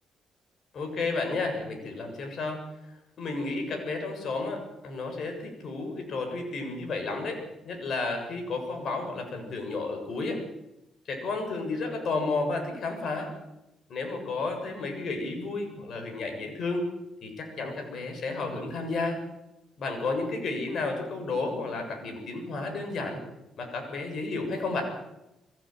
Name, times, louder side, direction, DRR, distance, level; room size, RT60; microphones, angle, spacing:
voice 1, 0.7-2.6 3.2-10.4 11.1-13.3 13.9-16.9 17.2-19.2 19.8-23.2 23.6-24.8, left 3 dB, 60° left, 4 dB, 7.3 m, -32 dB
23.0 x 16.5 x 9.3 m, 0.92 s
cardioid pair, 90°, 0 cm